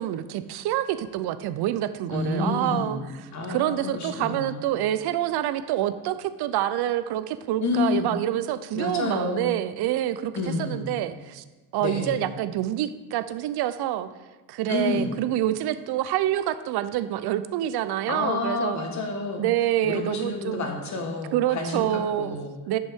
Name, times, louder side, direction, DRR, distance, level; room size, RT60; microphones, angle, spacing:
voice 1, 0.0-10.3 10.6-11.4 11.7-14.1 14.5-18.8 19.4-20.7 21.3-22.4 22.7-22.8, right 12 dB, 65° right, 13 dB, 0.5 m, -27 dB
voice 2, 2.1-4.6 7.6-8.1 8.7-9.5 10.3-10.9 11.8-12.3 14.7-15.1 18.1-19.4 19.8-22.5, left 3 dB, 40° left, 2 dB, 1.3 m, -29 dB
10.0 x 5.4 x 3.5 m, 1.2 s
cardioid pair, 150°, 42 cm